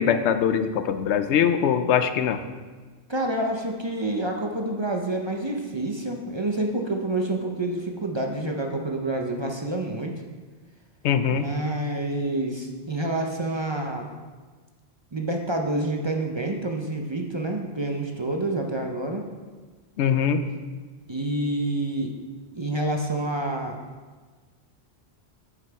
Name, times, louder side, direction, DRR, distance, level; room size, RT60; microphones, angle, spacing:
voice 1, 0.0-2.4 11.0-11.5 20.0-20.4, left 8 dB, 90° left, 10 dB, 0.9 m, -22 dB
voice 2, 3.1-10.1 11.3-14.1 15.1-19.2 21.1-22.1 22.5-23.8, right 2 dB, 30° right, 2 dB, 0.6 m, -28 dB
8.4 x 5.7 x 4.6 m, 1.4 s
omnidirectional pair, 1.1 m